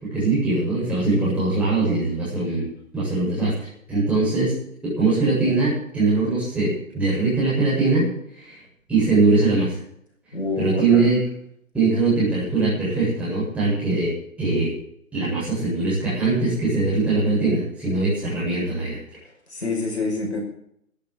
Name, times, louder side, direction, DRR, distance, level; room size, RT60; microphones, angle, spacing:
voice 1, 0.1-2.7 2.9-3.5 3.9-4.5 4.8-8.1 8.4-8.5 8.9-9.7 10.6-11.2 11.7-14.1 14.4-14.7 15.1-19.0, right 3 dB, 5° right, -9 dB, 7.9 m, -21 dB
voice 2, 10.3-11.1 19.2-20.4, left 2 dB, 50° left, 1 dB, 5.7 m, -27 dB
14.0 x 10.5 x 8.0 m, 0.70 s
figure-of-eight pair, 145°, 42 cm